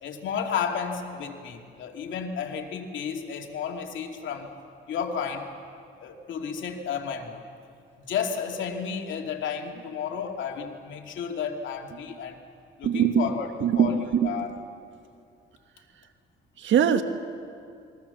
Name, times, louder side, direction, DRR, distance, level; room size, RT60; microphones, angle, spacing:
voice 1, 0.0-4.5 4.9-5.5 6.0-7.4 8.1-12.4 12.8-14.6, left 6 dB, 70° left, 3 dB, 2.7 m, -32 dB
voice 2, 12.8-13.3 13.6-14.3 16.6-17.0, right 8 dB, 70° right, 8 dB, 1.7 m, -22 dB
28.0 x 22.0 x 7.1 m, 2.4 s
cardioid pair, 90°, 20 cm